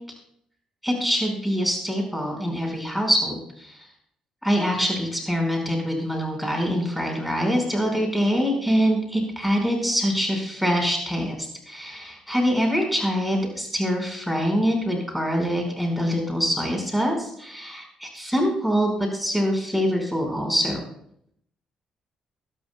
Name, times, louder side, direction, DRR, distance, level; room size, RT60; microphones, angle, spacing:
voice 1, 0.8-3.9 4.4-20.8, equal, 5° right, 1 dB, 5.2 m, -24 dB
22.0 x 11.5 x 2.3 m, 0.72 s
figure-of-eight pair, 40°, 3 cm